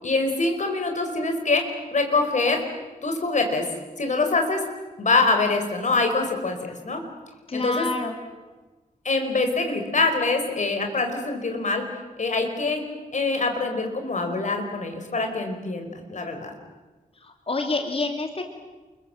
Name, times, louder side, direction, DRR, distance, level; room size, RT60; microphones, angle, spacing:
voice 1, 0.0-2.6 3.0-3.7 4.0-4.7 5.0-7.0 7.5-7.9 9.0-11.9 12.2-12.8 13.1-16.5, left 3 dB, 55° left, 5 dB, 4.8 m, -24 dB
voice 2, 7.5-8.1 17.2-18.5, left 3 dB, 40° left, 4 dB, 2.6 m, -27 dB
29.0 x 23.0 x 7.7 m, 1.2 s
wide cardioid pair, 125°, 15 cm